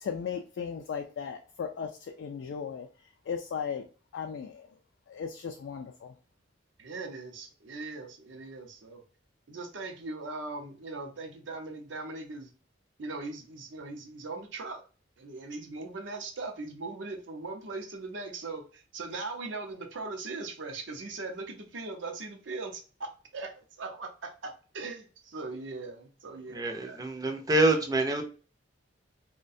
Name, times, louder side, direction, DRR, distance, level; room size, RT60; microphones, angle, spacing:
voice 1, 0.0-2.9 3.3-3.9 4.1-4.7 5.1-6.1, left 6 dB, 65° left, 4 dB, 0.3 m, -36 dB
voice 2, 6.8-9.0 9.5-12.5 13.0-14.8 15.2-27.0, right 3 dB, 70° right, 4 dB, 0.6 m, -40 dB
voice 3, 26.5-28.2, right 2 dB, 20° right, 3 dB, 0.4 m, -26 dB
2.4 x 2.1 x 2.6 m, 0.35 s
head